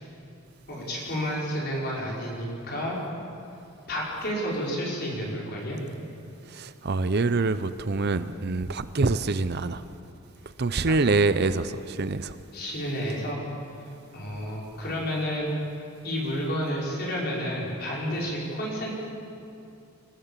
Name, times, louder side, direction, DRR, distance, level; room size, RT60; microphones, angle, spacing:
voice 1, 0.7-3.0 3.9-5.8 10.9-11.0 12.5-13.4 13.8-15.5 16.0-18.9, equal, 50° left, 5.6 m, -30 dB
voice 2, 6.5-9.8 10.6-12.4, right 3 dB, 50° right, 0.6 m, -25 dB
27.0 x 15.0 x 7.4 m
head